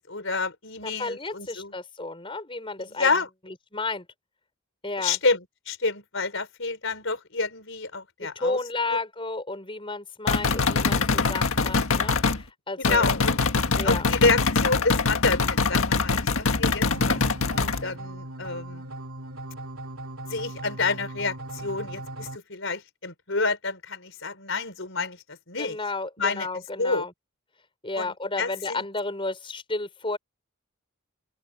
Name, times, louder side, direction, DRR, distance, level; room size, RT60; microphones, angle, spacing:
voice 1, 0.1-1.7 2.8-3.3 5.0-8.6 8.9-9.0 12.8-13.4 13.8-17.2 17.5-18.8 20.3-25.8 26.2-27.1 28.0-28.8, left 3 dB, 65° left, 5.4 m, -28 dB
voice 2, 0.8-4.1 4.8-5.2 8.2-13.1 13.8-14.0 25.6-27.1 27.8-30.2, left 3 dB, 25° left, 5.6 m, -32 dB
sound 1, 10.3-12.4 12.8-17.8, left 4 dB, 85° left, 1.6 m, -23 dB
sound 2, 16.9-22.4, right 1 dB, 80° right, 2.9 m, -38 dB
open air
head